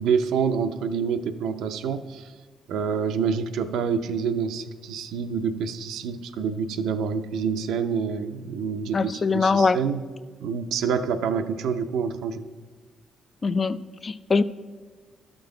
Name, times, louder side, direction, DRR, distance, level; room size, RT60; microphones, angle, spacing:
voice 1, 0.0-2.3 2.7-10.0 10.4-12.5, right 6 dB, 85° right, 8 dB, 0.5 m, -27 dB
voice 2, 8.9-9.8 13.4-14.4, left 4 dB, 35° left, 13 dB, 0.4 m, -22 dB
12.5 x 6.0 x 3.8 m, 1.5 s
cardioid pair, 90°, 0 cm